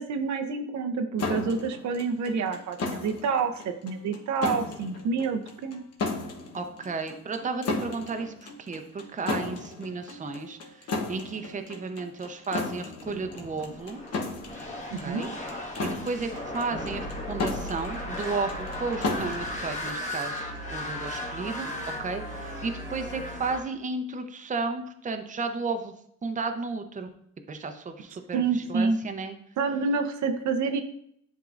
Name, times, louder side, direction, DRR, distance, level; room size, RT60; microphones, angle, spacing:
voice 1, 0.0-5.8 14.9-15.2 28.3-29.0 29.6-30.8, right 5 dB, 70° right, 6 dB, 0.7 m, -28 dB
sound 1, 1.2-20.6, left 3 dB, 55° left, 1.1 m, -35 dB
voice 2, 6.5-10.6 11.1-14.0 15.0-15.3 15.8-21.7 22.0-25.9 26.2-27.1 27.5-29.4, right 4 dB, 25° right, 7 dB, 0.7 m, -33 dB
sound 2, 13.0-23.6, left 1 dB, 25° left, 1.3 m, -36 dB
10.5 x 3.7 x 2.5 m, 0.68 s
cardioid pair, 90°, 30 cm